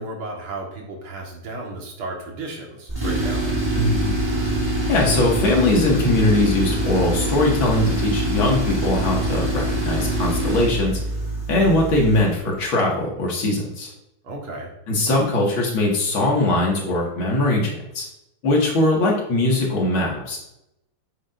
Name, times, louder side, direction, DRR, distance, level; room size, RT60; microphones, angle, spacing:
voice 1, 0.0-3.5 14.2-14.7, right 2 dB, 75° right, -1 dB, 2.6 m, -34 dB
Tools, 2.9-12.4, right 1 dB, 15° right, 2.7 m, -24 dB
voice 2, 3.7-4.2 4.9-11.0 11.5-13.9 14.9-18.0 18.4-20.4, left 2 dB, 65° left, -1 dB, 2.7 m, -21 dB
9.8 x 7.7 x 2.6 m, 0.83 s
omnidirectional pair, 2.4 m